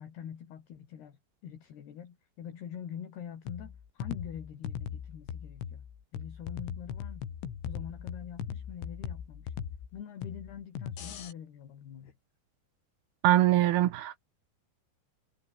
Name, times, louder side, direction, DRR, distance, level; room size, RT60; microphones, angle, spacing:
voice 1, 0.0-5.9 6.1-7.3 7.7-9.5 9.9-12.1, left 8 dB, 60° left, 4.7 m, -45 dB
sound 1, 3.5-11.3, left 8 dB, 75° left, 6.2 m, -39 dB
voice 2, 13.2-14.3, right 14 dB, 75° right, 2.3 m, -23 dB
omnidirectional pair, 5.7 m